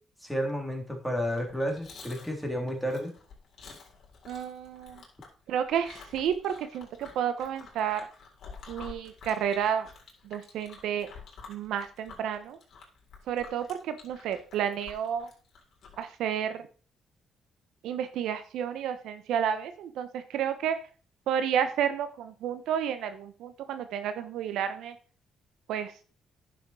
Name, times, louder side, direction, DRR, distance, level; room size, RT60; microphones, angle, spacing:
voice 1, 0.2-3.1, equal, ahead, 1 dB, 3.5 m, -31 dB
Chewing mastication, 1.3-16.1, left 5 dB, 60° left, 3.9 m, -50 dB
voice 2, 4.3-5.0 5.5-8.1 8.7-9.9 10.2-11.1 11.5-12.6 13.3-15.3 16.0-16.7 17.8-20.8 21.3-25.0 25.7-25.9, right 8 dB, 85° right, 10 dB, 0.9 m, -31 dB
10.5 x 6.3 x 4.8 m, 0.38 s
cardioid pair, 90°, 0 cm